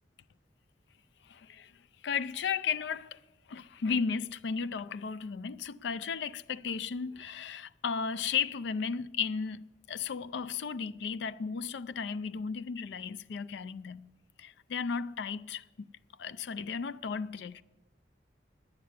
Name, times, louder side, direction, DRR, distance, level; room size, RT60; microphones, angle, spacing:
voice 1, 1.3-1.7 2.0-3.2 3.5-14.1 14.4-15.6 16.2-17.6, left 6 dB, 65° left, 0.4 m, -34 dB
9.8 x 7.6 x 9.5 m
head